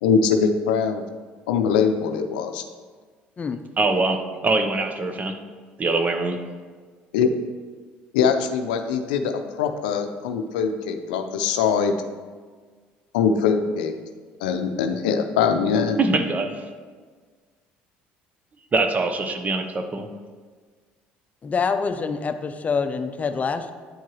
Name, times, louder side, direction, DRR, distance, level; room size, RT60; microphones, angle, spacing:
voice 1, 0.0-1.0 1.5-2.6 7.1-7.3 8.1-12.0 13.1-13.9 14.4-16.0, left 6 dB, 90° left, 7 dB, 0.5 m, -22 dB
voice 2, 3.8-5.3 5.8-6.4 16.0-16.6 18.7-20.1, right 3 dB, 35° right, 7 dB, 0.8 m, -23 dB
voice 3, 21.4-23.7, left 5 dB, 35° left, 9 dB, 0.5 m, -26 dB
9.4 x 4.6 x 3.0 m, 1.5 s
supercardioid pair, 80°, 5 cm